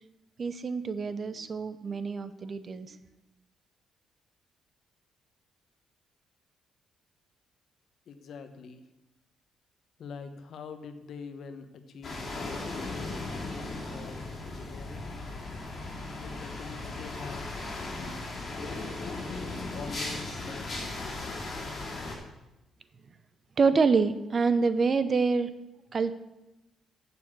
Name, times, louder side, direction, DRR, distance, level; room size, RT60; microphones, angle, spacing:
voice 1, 0.4-3.0 23.6-25.5 25.9-26.1, right 4 dB, 40° right, 12 dB, 0.7 m, -26 dB
voice 2, 8.1-8.8 10.0-15.1 16.2-17.5 19.0-21.6, left 5 dB, 65° left, 8 dB, 1.0 m, -45 dB
sound 1, 12.0-22.2, left 2 dB, 40° left, 3.5 m, -37 dB
8.3 x 6.9 x 6.1 m, 0.95 s
cardioid pair, 90°, 0 cm